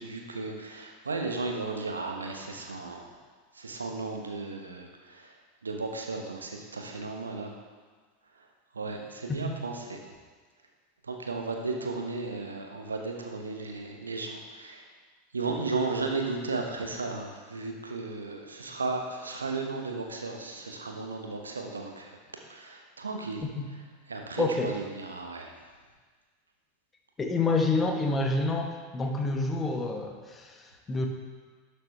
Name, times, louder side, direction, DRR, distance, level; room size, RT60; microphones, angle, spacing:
voice 1, 0.0-3.0 3.6-5.3 5.6-7.5 8.7-10.0 11.1-14.8 15.3-22.2 22.5-23.4 24.1-25.5, right 3 dB, 80° right, 2 dB, 1.0 m, -35 dB
voice 2, 24.4-24.7 27.2-31.1, left 3 dB, 20° left, 3 dB, 1.2 m, -28 dB
11.5 x 6.7 x 3.3 m, 1.5 s
figure-of-eight pair, 85°, 0 cm